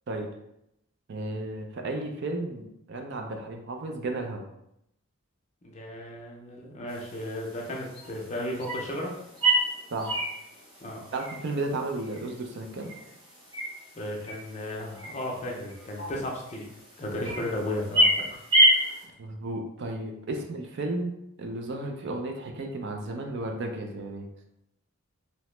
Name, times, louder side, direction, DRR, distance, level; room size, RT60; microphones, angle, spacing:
voice 1, 1.1-4.4 9.9-10.2 11.1-12.9 19.2-21.1 21.4-24.3, right 2 dB, 55° right, 3 dB, 0.4 m, -33 dB
voice 2, 5.6-9.1 10.8-11.0 14.0-16.7 17.0-19.0, left 1 dB, 30° left, -1 dB, 0.5 m, -35 dB
sound 1, 6.9-19.0, right 1 dB, 20° right, 0.8 m, -29 dB
2.8 x 2.1 x 3.1 m, 0.81 s
head